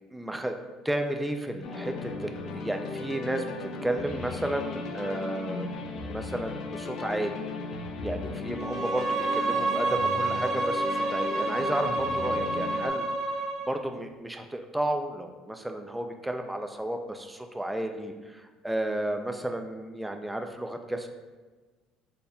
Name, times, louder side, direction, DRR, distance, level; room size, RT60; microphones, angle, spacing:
voice 1, 0.1-0.6 0.8-7.4 8.0-13.1 13.7-21.1, right 1 dB, 5° right, 6 dB, 0.3 m, -32 dB
sound 1, 1.6-12.9, left 3 dB, 60° left, 0.5 m, -36 dB
Bowed string instrument, 8.6-13.7, right 2 dB, 45° right, 0.7 m, -29 dB
4.3 x 3.4 x 2.2 m, 1.3 s
cardioid pair, 110°, 0 cm